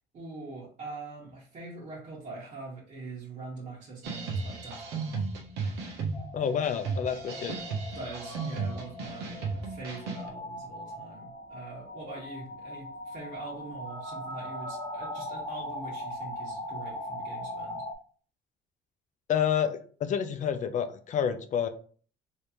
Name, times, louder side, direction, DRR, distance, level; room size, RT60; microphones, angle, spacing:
voice 1, 0.1-5.3 7.9-17.8, right 3 dB, 50° right, -5 dB, 1.6 m, -43 dB
sound 1, 4.0-10.3, right 4 dB, 85° right, 0.9 m, -35 dB
sound 2, 6.1-17.9, left 1 dB, 20° left, 1.0 m, -40 dB
voice 2, 6.3-7.6 19.3-21.7, left 8 dB, 50° left, 9 dB, 0.5 m, -29 dB
3.4 x 3.2 x 2.8 m, 0.43 s
cardioid pair, 110°, 17 cm